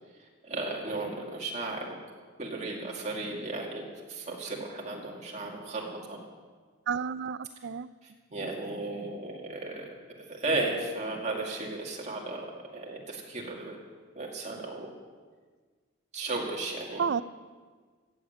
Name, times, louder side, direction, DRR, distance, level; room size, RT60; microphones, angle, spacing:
voice 1, 0.4-2.0 2.4-6.2 8.3-13.8 14.2-14.9 16.1-17.0, right 2 dB, 35° right, -1 dB, 2.2 m, -35 dB
voice 2, 6.9-7.9 17.0-17.2, right 6 dB, 50° right, 16 dB, 0.4 m, -30 dB
14.5 x 7.1 x 8.8 m, 1.5 s
head